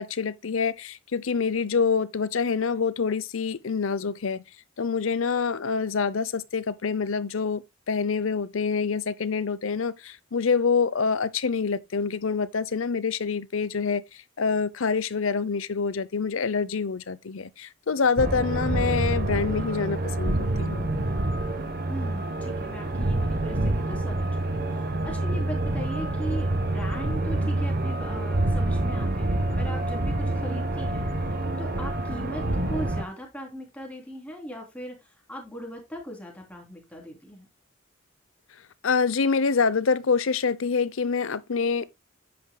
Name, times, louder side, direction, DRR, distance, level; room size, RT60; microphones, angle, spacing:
voice 1, 0.0-4.4 4.8-14.0 14.4-20.9 38.8-41.8, left 5 dB, 70° left, 0.7 m, -26 dB
sound 1, 18.2-33.0, right 1 dB, 45° right, 1.1 m, -27 dB
voice 2, 21.9-31.1 31.6-37.5, equal, 5° left, 3.2 m, -39 dB
10.5 x 8.8 x 2.2 m
head